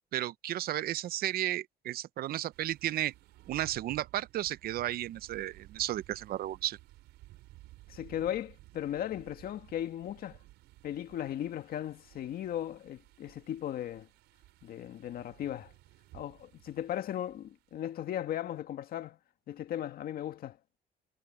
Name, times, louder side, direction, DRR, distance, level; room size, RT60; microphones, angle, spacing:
voice 1, 0.1-3.1 3.5-6.8, right 13 dB, 65° right, 0.7 m, -33 dB
sound 1, 2.5-17.8, right 17 dB, 90° right, 5.0 m, -56 dB
voice 2, 7.9-10.4 10.8-14.1 14.6-15.7 16.1-19.2 19.5-20.6, left 11 dB, 60° left, 1.8 m, -37 dB
cardioid pair, 110°, 17 cm